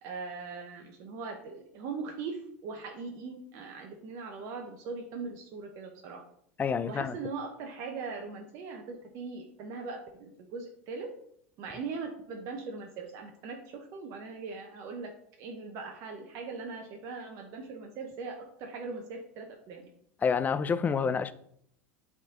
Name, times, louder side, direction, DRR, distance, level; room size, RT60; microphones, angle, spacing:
voice 1, 0.0-6.2 6.9-11.1 11.6-15.1 15.4-19.8, right 4 dB, 50° right, 0.9 m, -40 dB
voice 2, 6.6-7.2 20.2-21.3, left 6 dB, 25° left, 0.4 m, -28 dB
7.6 x 3.8 x 3.8 m
hypercardioid pair, 85°, 7 cm